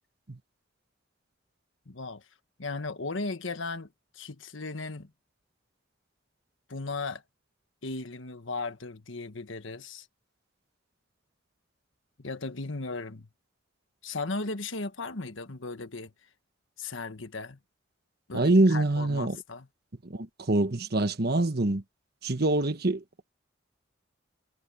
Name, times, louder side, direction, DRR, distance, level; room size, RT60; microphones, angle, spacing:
voice 1, 1.9-2.2 2.6-3.9 4.1-5.1 6.7-7.2 7.8-10.1 12.2-13.3 14.0-16.1 16.8-17.6 18.3-19.7, left 3 dB, 80° left, 1.5 m, -36 dB
voice 2, 18.3-19.4 20.0-21.8 22.2-23.0, right 2 dB, 55° right, 1.3 m, -25 dB
head